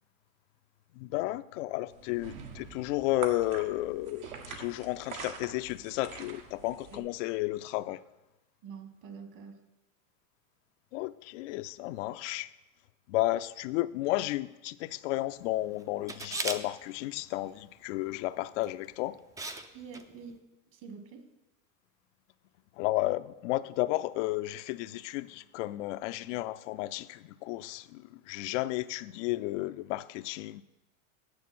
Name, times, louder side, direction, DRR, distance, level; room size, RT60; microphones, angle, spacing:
voice 1, 1.0-8.0 10.9-12.5 13.1-19.2 22.8-30.6, left 17 dB, 60° left, 0.5 m, -33 dB
sound 1, 1.9-7.0, right 6 dB, 70° right, 1.6 m, -45 dB
voice 2, 8.6-9.6 19.7-20.4 20.7-21.2, right 6 dB, 45° right, 1.7 m, -46 dB
Camera, 16.1-16.6 18.6-18.8 19.4-19.7 19.9-20.0, right 2 dB, 10° right, 0.4 m, -35 dB
9.6 x 6.5 x 6.0 m
hypercardioid pair, 110°, 42 cm